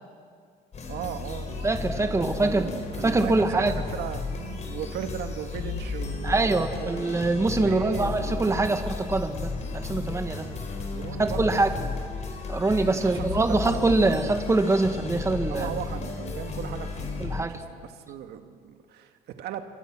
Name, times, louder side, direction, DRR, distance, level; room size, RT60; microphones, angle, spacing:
sound 1, 0.7-17.4, left 4 dB, 45° left, 4.8 m, -34 dB
voice 1, 0.9-3.6 3.9-7.3 7.6-8.8 9.5-10.1 10.9-11.9 12.9-14.1 15.5-19.6, right 9 dB, 75° right, 6 dB, 1.9 m, -37 dB
voice 2, 1.6-2.7 3.0-3.7 6.2-10.5 11.2-11.7 12.5-15.7 17.2-17.6, right 2 dB, 15° right, 7 dB, 1.8 m, -24 dB
28.0 x 25.5 x 6.3 m, 2.1 s
cardioid pair, 110°, 17 cm